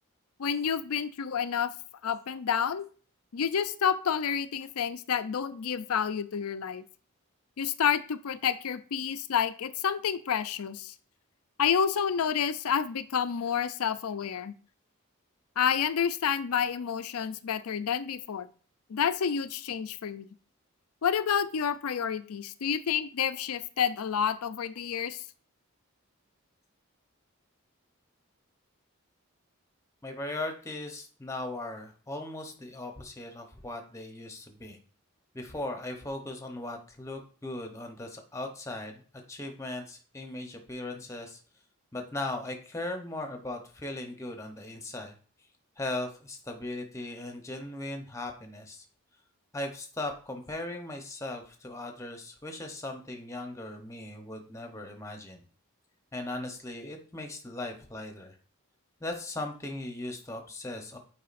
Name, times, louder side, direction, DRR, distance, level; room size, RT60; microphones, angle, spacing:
voice 1, 0.4-1.7 2.0-2.9 3.3-6.8 7.6-10.9 11.6-14.5 15.6-18.5 18.9-20.3 21.0-25.2, left 7 dB, 85° left, 13 dB, 0.5 m, -29 dB
voice 2, 30.0-34.8 35.3-38.9 39.3-41.4 41.9-45.1 45.8-48.8 49.5-55.4 56.1-58.4 59.0-61.0, left 2 dB, 15° left, 4 dB, 0.8 m, -38 dB
8.3 x 4.8 x 2.5 m, 0.41 s
head